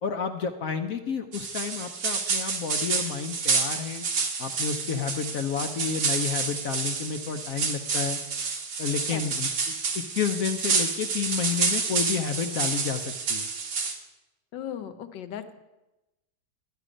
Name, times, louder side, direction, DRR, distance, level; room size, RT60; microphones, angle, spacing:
voice 1, 0.0-4.0 4.4-8.2 8.8-13.5, left 6 dB, 65° left, 7 dB, 0.9 m, -31 dB
sound 1, 1.3-13.9, right 5 dB, 80° right, 2.1 m, -29 dB
voice 2, 14.5-15.6, left 9 dB, 80° left, 9 dB, 1.5 m, -37 dB
12.0 x 9.8 x 5.1 m, 1.0 s
omnidirectional pair, 1.9 m